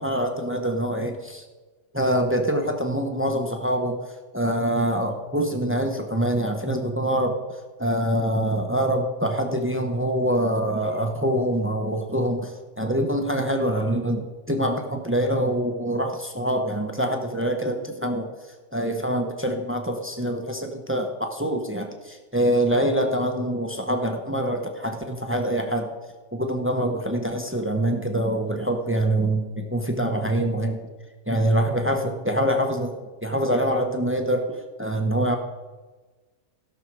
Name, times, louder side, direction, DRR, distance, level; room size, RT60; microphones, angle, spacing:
voice 1, 0.0-1.4 1.9-4.0 4.3-18.3 18.7-25.9 26.3-30.8 31.3-32.9 33.2-35.4, right 1 dB, 15° right, 4 dB, 0.5 m, -25 dB
16.5 x 6.3 x 4.7 m, 1.3 s
omnidirectional pair, 1.9 m